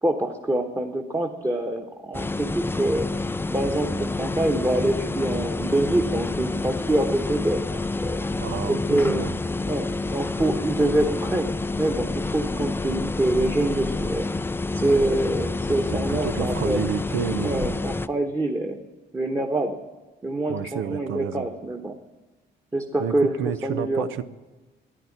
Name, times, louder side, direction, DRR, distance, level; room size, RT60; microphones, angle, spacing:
voice 1, 0.0-3.1 3.5-8.2 8.7-9.3 9.6-11.5 11.7-14.3 14.7-16.8 17.4-18.8 19.1-19.8 20.2-21.9 22.7-23.3 23.6-24.0, right 1 dB, 15° right, 1 dB, 1.3 m, -25 dB
sound 1, 2.1-18.1, left 3 dB, 10° left, 0.4 m, -28 dB
voice 2, 8.4-9.3 15.9-17.7 20.5-21.5 23.0-24.2, right 9 dB, 90° right, 14 dB, 0.8 m, -30 dB
11.5 x 10.0 x 9.9 m, 1.2 s
cardioid pair, 90°, 20 cm